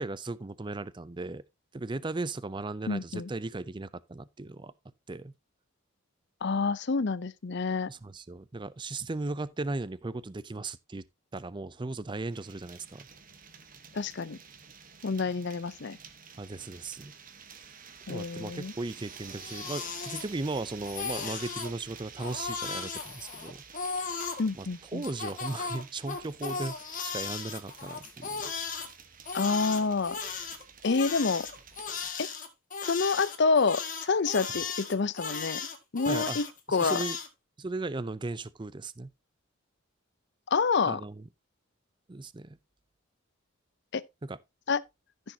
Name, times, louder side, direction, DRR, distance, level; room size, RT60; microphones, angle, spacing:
voice 1, 0.0-1.4 1.7-4.7 5.1-5.3 7.9-11.0 11.3-13.1 16.4-17.1 17.5-17.7 18.1-23.9 24.5-28.4 34.5-34.6 36.1-36.4 36.7-37.2 37.6-39.1 40.9-41.2 42.1-42.6 44.2-44.4, right 2 dB, 20° right, 0.5 m, -37 dB
voice 2, 2.9-3.3 6.4-7.9 13.9-14.4 15.0-16.0 18.1-18.7 24.4-25.0 29.3-30.2 30.8-31.5 32.2-32.3 32.8-35.6 35.9-37.0 40.5-41.0 43.9-44.0 44.7-44.8, left 4 dB, 55° left, 0.6 m, -28 dB
sound 1, 12.3-32.1, right 6 dB, 40° right, 1.2 m, -50 dB
Crying sobbing, 19.1-20.6 20.8-21.7 22.2-24.4 25.0-28.9 29.3-37.3, left 5 dB, 40° left, 1.8 m, -36 dB
14.5 x 6.6 x 2.8 m
head